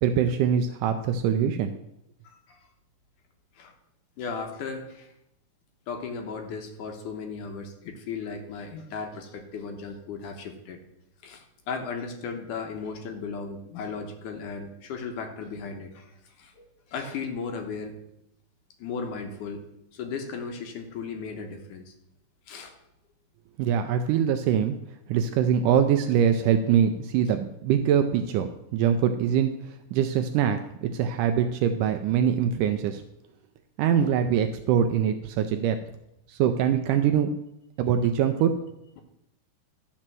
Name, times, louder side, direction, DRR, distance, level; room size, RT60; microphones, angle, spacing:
voice 1, 0.0-1.8 23.6-24.8 25.1-29.5 29.9-33.0 33.8-35.8 36.3-37.3 37.8-38.5, right 8 dB, 80° right, 7 dB, 1.9 m, -23 dB
voice 2, 2.2-2.6 3.6-3.7 4.2-5.1 5.9-10.8 11.2-17.9 18.8-19.6 19.9-21.9 22.5-22.7 34.0-34.1, left 5 dB, 70° left, 5 dB, 2.3 m, -36 dB
12.5 x 4.4 x 7.5 m, 0.83 s
omnidirectional pair, 4.1 m